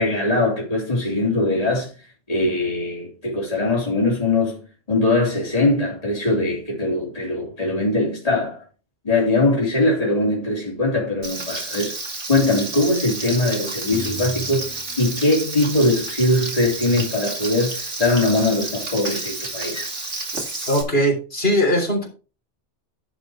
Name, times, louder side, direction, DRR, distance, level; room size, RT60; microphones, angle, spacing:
voice 1, 0.0-1.9 2.3-4.6 4.9-8.6 9.0-12.0 12.3-14.7 15.0-19.9, left 2 dB, 30° left, 3.1 m, -21 dB
Frying (food), 11.2-20.8, right 2 dB, 70° right, 2.8 m, -30 dB
sound 1, 13.9-16.1, left 2 dB, 15° right, 1.4 m, -38 dB
voice 2, 20.7-22.1, equal, 55° left, 3.6 m, -20 dB
11.0 x 5.3 x 4.6 m
omnidirectional pair, 1.2 m